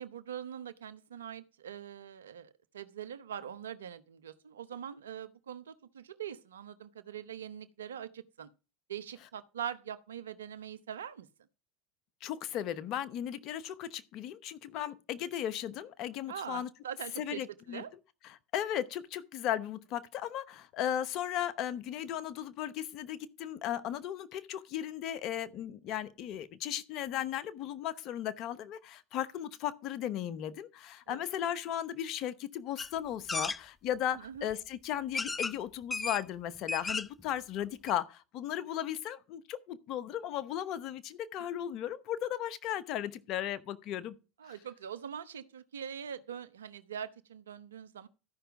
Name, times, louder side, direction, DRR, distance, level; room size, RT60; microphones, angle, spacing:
voice 1, 0.0-8.5 8.9-11.3 14.7-14.9 16.3-17.9 31.1-31.3 34.1-34.5 44.4-48.1, right 9 dB, 85° right, 0.8 m, -43 dB
voice 2, 12.2-16.7 17.2-17.8 18.2-44.2, left 11 dB, 50° left, 0.9 m, -36 dB
sound 1, 32.8-32.9 33.3-33.6 34.5-34.6 35.1-35.5 35.9-36.2 36.5-37.2 37.6-37.7 37.9-38.0, left 3 dB, 15° left, 0.5 m, -34 dB
13.0 x 5.7 x 5.1 m
hypercardioid pair, 85°, 0 cm